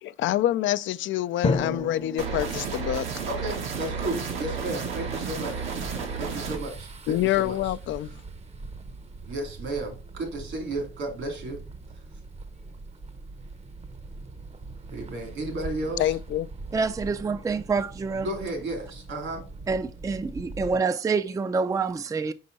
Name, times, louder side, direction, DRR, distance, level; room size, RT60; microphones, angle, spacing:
voice 1, 0.0-3.1 7.1-8.1 16.0-16.5, left 13 dB, 75° left, 0.4 m, -26 dB
Drum, 1.4-3.9, left 3 dB, 30° left, 0.7 m, -31 dB
sound 1, 2.2-6.6, right 5 dB, 90° right, 1.7 m, -32 dB
voice 2, 3.3-5.6 6.2-7.6 9.2-11.6 14.9-16.1 18.2-19.4, right 2 dB, 75° right, 2.9 m, -33 dB
sound 2, 4.9-20.8, right 3 dB, 30° right, 0.8 m, -42 dB
voice 3, 16.7-18.3 19.7-22.3, right 4 dB, 15° right, 0.4 m, -27 dB
5.6 x 5.2 x 4.0 m
cardioid pair, 90°, 20 cm